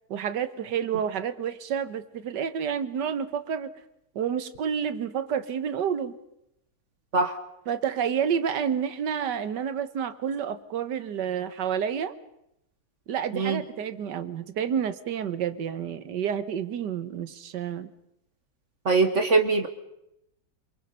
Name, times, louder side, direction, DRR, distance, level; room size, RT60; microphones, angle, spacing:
voice 1, 0.1-3.7 4.2-6.1 7.7-12.1 13.1-17.9, right 8 dB, 85° right, 13 dB, 1.7 m, -29 dB
voice 2, 18.8-19.7, right 3 dB, 45° right, 8 dB, 1.5 m, -22 dB
26.5 x 23.5 x 5.6 m, 0.83 s
omnidirectional pair, 1.8 m